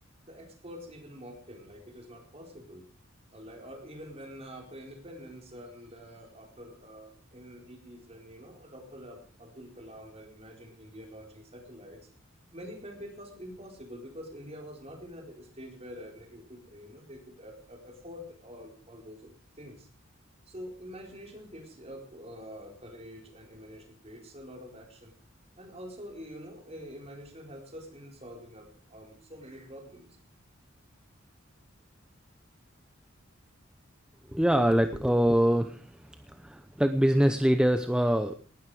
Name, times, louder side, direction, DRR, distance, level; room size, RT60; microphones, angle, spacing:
voice 1, 0.2-2.9 3.3-12.0 12.5-19.3 19.5-19.9 20.5-25.2 25.6-30.1, equal, 30° right, 2 dB, 4.4 m, -46 dB
voice 2, 34.3-35.8 36.5-38.4, equal, 5° right, 8 dB, 0.8 m, -23 dB
18.5 x 13.0 x 4.9 m, 0.41 s
head